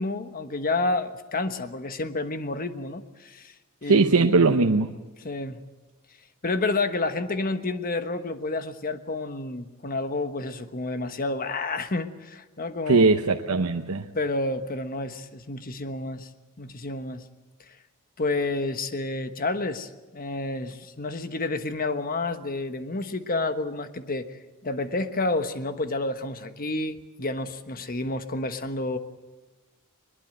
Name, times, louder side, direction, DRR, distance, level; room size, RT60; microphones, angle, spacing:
voice 1, 0.0-3.5 3.8-4.6 5.2-5.6 6.4-13.2 14.1-16.3 16.6-17.2 17.7-17.8 18.2-29.0, left 2 dB, 40° left, 9 dB, 1.3 m, -30 dB
voice 2, 3.9-4.9 12.9-14.0, right 3 dB, 85° right, 4 dB, 0.9 m, -20 dB
21.5 x 21.0 x 7.8 m, 1.2 s
head